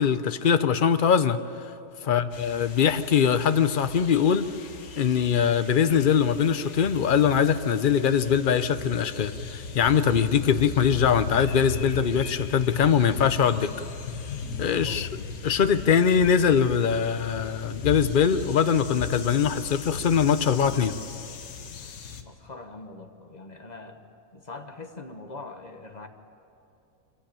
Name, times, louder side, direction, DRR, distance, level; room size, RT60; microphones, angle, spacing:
voice 1, 0.0-1.4 2.1-4.5 5.0-13.9 14.6-15.1 15.4-20.9, left 7 dB, 50° left, 11 dB, 0.6 m, -22 dB
sound 1, 2.3-22.2, left 5 dB, 65° left, 1.6 m, -37 dB
voice 2, 22.2-24.0 24.3-26.1, left 3 dB, 30° left, 6 dB, 1.3 m, -42 dB
26.0 x 15.5 x 8.8 m, 2.7 s
omnidirectional pair, 1.6 m